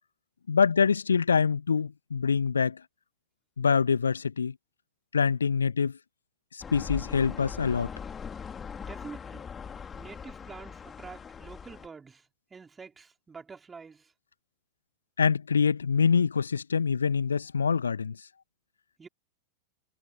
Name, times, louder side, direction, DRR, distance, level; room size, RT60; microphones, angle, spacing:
voice 1, 0.5-2.8 3.6-4.5 5.1-5.9 6.5-7.9 15.2-18.2, left 6 dB, 75° left, 1.1 m, -25 dB
sound 1, 6.6-11.9, left 6 dB, 20° left, 3.4 m, -40 dB
voice 2, 8.8-9.5 9.9-14.1 19.0-19.1, right 5 dB, 15° right, 4.0 m, -47 dB
figure-of-eight pair, 90°, 0 cm